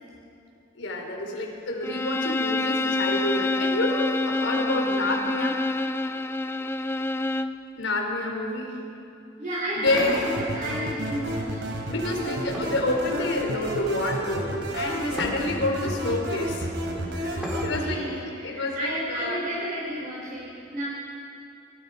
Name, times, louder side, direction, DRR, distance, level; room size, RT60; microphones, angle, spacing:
voice 1, 0.7-5.6 7.8-8.7 9.8-10.2 11.9-16.7 17.1-19.4, left 2 dB, 85° left, 1 dB, 4.3 m, -28 dB
Bowed string instrument, 1.8-7.6, left 2 dB, 15° left, 0.6 m, -27 dB
voice 2, 9.4-11.7 17.3-20.8, right 1 dB, 45° right, -6 dB, 4.4 m, -32 dB
sound 1, 9.9-17.9, right 1 dB, 70° right, 4.1 m, -31 dB
sound 2, 10.0-10.9 12.5-13.5 15.2-15.8 17.4-18.1, equal, 5° right, 3.6 m, -39 dB
29.0 x 23.0 x 5.1 m, 2.7 s
head